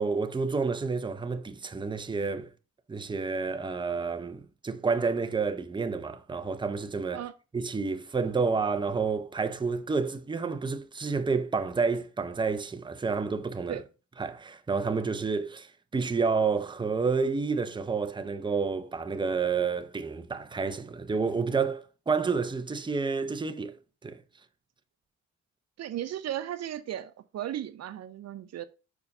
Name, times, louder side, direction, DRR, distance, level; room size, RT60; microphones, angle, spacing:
voice 1, 0.0-2.5 2.9-7.2 7.5-13.8 14.2-23.8 24.0-24.2, right 4 dB, 15° right, 0.7 m, -29 dB
voice 2, 25.8-28.6, right 11 dB, 60° right, 0.6 m, -36 dB
5.4 x 4.6 x 5.3 m
cardioid pair, 90°, 30 cm